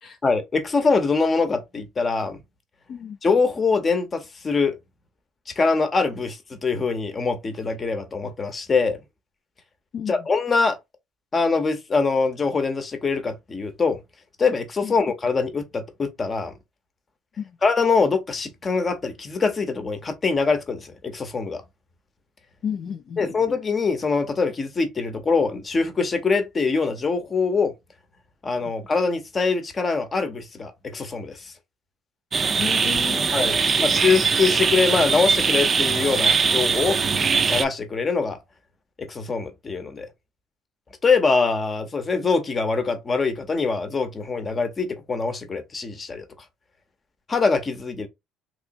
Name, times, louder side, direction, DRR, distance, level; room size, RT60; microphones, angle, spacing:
voice 1, 0.2-2.4 3.2-4.7 5.5-9.0 10.1-10.8 11.3-14.0 14.4-16.5 17.6-21.6 23.2-27.7 28.4-31.5 33.3-37.0 37.5-38.4 39.0-40.1 41.0-46.2 47.3-48.1, left 4 dB, 30° left, 0.8 m, -23 dB
voice 2, 9.9-10.3 14.8-14.9 17.4-17.6 22.6-23.2 28.6-28.7 32.5-33.9, left 7 dB, 50° left, 0.5 m, -33 dB
sound 1, 32.3-37.6, right 5 dB, 30° right, 0.4 m, -21 dB
3.2 x 3.0 x 2.6 m
cardioid pair, 115°, 0 cm